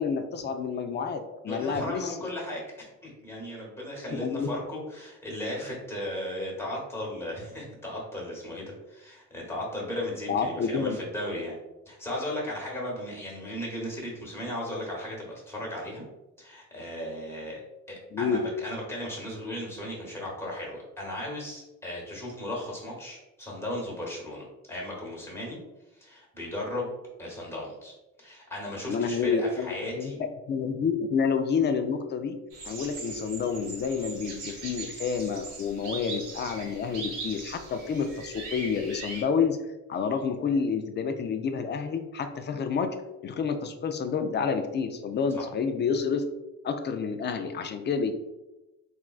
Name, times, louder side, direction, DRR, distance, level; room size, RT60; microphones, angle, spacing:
voice 1, 0.0-2.1 4.1-4.5 10.3-11.0 18.1-18.4 28.9-30.1 30.5-32.4 32.7-39.6 39.9-43.0 43.2-46.2 46.6-48.1, left 6 dB, 35° left, 7 dB, 0.4 m, -29 dB
voice 2, 1.5-11.6 11.9-16.0 16.4-17.6 17.9-25.6 25.9-26.9 27.2-30.2 45.3-45.4, left 1 dB, 10° left, -3 dB, 1.3 m, -36 dB
sound 1, 32.5-39.2, right 3 dB, 85° right, 0.8 m, -40 dB
3.6 x 2.3 x 2.3 m, 1.0 s
cardioid pair, 90°, 30 cm